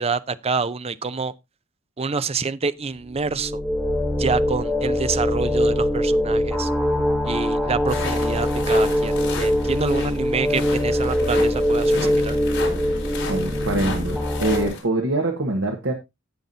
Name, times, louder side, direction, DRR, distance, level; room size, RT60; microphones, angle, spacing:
voice 1, 0.0-1.3 2.0-3.6 4.2-6.7 7.3-12.4, right 4 dB, 30° right, 0.5 m, -27 dB
sound 1, 3.1-14.7, equal, 5° right, 3.8 m, -22 dB
sound 2, 7.9-14.8, left 3 dB, 65° left, 4.1 m, -34 dB
voice 2, 13.3-15.9, right 2 dB, 65° right, 1.4 m, -24 dB
17.0 x 5.8 x 2.7 m
head